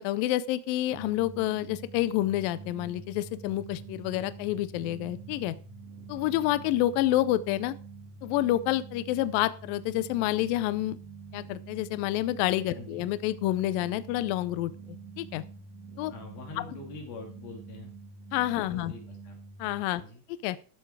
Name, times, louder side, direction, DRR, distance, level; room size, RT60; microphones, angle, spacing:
voice 1, 0.0-5.6 6.1-7.7 8.2-11.0 11.3-15.4 16.0-16.1 18.3-18.9 19.6-20.0 20.4-20.6, left 14 dB, 85° left, 15 dB, 2.0 m, -28 dB
sound 1, 0.9-19.8, right 4 dB, 60° right, 2.7 m, -46 dB
voice 2, 12.7-13.1 16.1-17.9 18.7-19.4 19.9-20.2, left 4 dB, 65° left, 1 dB, 4.7 m, -44 dB
13.5 x 6.9 x 4.7 m, 0.39 s
omnidirectional pair, 4.7 m